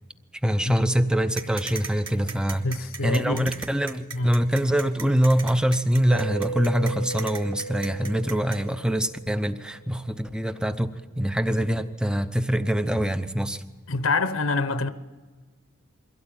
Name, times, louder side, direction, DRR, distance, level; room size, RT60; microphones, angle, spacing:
voice 1, 0.4-2.7 3.0-10.9 11.2-13.6, equal, 5° right, 0.7 m, -24 dB
sound 1, 1.4-8.6, right 4 dB, 25° right, 2.8 m, -37 dB
voice 2, 2.6-3.4 4.1-4.3 13.9-14.9, left 3 dB, 75° left, 0.9 m, -26 dB
Mallet percussion, 6.1-9.9, right 4 dB, 45° right, 2.1 m, -36 dB
23.0 x 16.5 x 9.0 m
head